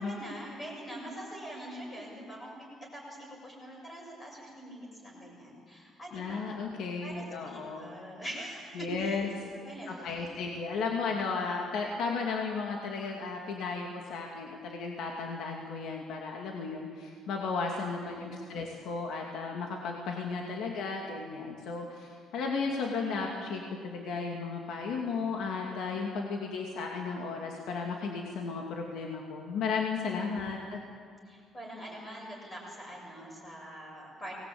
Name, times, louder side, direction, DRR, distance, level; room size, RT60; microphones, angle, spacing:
voice 1, 0.0-6.6 7.0-10.3 18.0-18.5 31.3-34.4, right 1 dB, 20° left, -2 dB, 7.1 m, -44 dB
voice 2, 6.1-7.9 8.7-9.3 9.9-30.8, left 4 dB, 65° left, 0 dB, 2.5 m, -34 dB
25.0 x 19.5 x 8.8 m, 2.2 s
cardioid pair, 175°, 0 cm